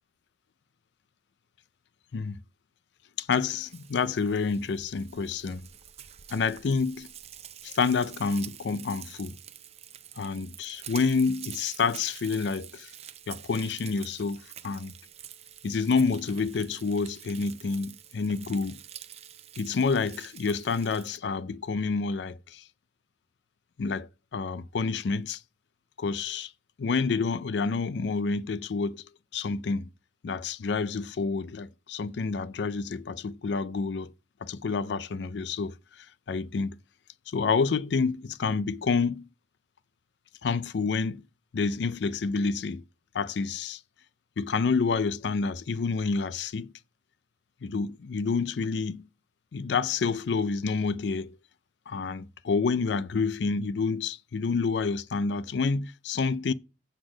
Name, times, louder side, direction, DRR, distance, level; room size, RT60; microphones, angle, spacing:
voice 1, 3.2-5.6 6.3-7.1 7.6-9.4 10.2-12.9 13.3-14.9 15.6-18.8 19.6-22.6 23.8-25.4 26.0-26.5 26.8-29.0 29.3-29.9 30.2-34.1 34.4-36.8 37.3-39.2 40.4-41.2 41.5-42.8 43.1-43.8 44.4-46.7 47.6-49.1 49.5-51.4 51.9-56.5, left 4 dB, 70° left, 0.4 m, -28 dB
Frying (food), 3.3-21.2, right 10 dB, 35° right, 0.5 m, -47 dB
7.8 x 4.1 x 6.2 m
head